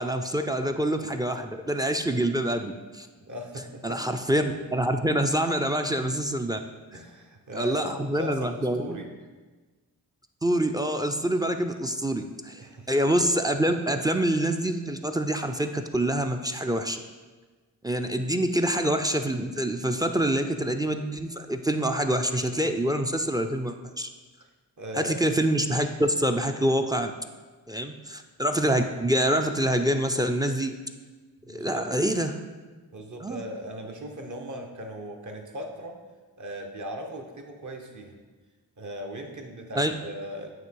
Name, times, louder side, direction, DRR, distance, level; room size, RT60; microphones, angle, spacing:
voice 1, 0.0-3.1 3.8-6.6 7.5-9.0 10.4-17.0 17.8-24.1 24.9-27.1 27.7-30.7 31.5-32.4 33.2-33.4 39.7-39.9, right 1 dB, 10° right, 7 dB, 0.4 m, -26 dB
voice 2, 3.2-4.0 6.9-9.1 12.6-12.9 24.8-25.1 31.4-31.8 32.9-36.0 36.4-38.1 38.8-40.5, equal, 50° right, 3 dB, 1.1 m, -38 dB
9.0 x 3.0 x 4.6 m, 1.3 s
cardioid pair, 60°, 38 cm